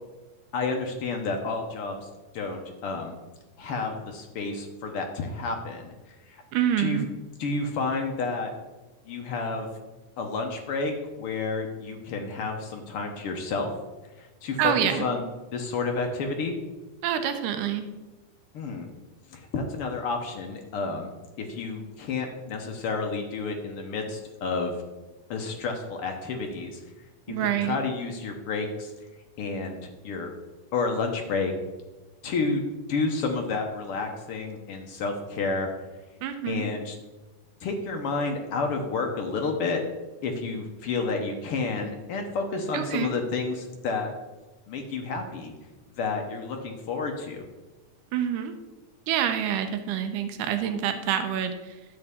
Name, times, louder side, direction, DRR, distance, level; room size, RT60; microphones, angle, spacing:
voice 1, 0.5-2.1 2.3-3.1 3.6-5.9 6.3-6.4 6.8-7.0 7.4-8.5 9.1-9.7 10.2-13.7 14.2-14.7 15.0-15.2 15.5-16.5 18.5-18.9 19.3-24.7 25.3-26.8 27.3-28.9 29.4-30.3 30.7-31.5 32.2-35.7 36.5-37.0 37.6-39.8 40.2-44.1 44.7-45.5 46.0-47.5, left 4 dB, 70° left, 3 dB, 1.3 m, -30 dB
voice 2, 6.5-7.1 14.6-15.1 17.0-17.9 27.3-27.8 36.2-36.7 42.7-43.2 48.1-48.6 49.1-51.8, right 9 dB, 85° right, 8 dB, 2.3 m, -27 dB
11.0 x 7.7 x 3.6 m, 1.2 s
omnidirectional pair, 3.7 m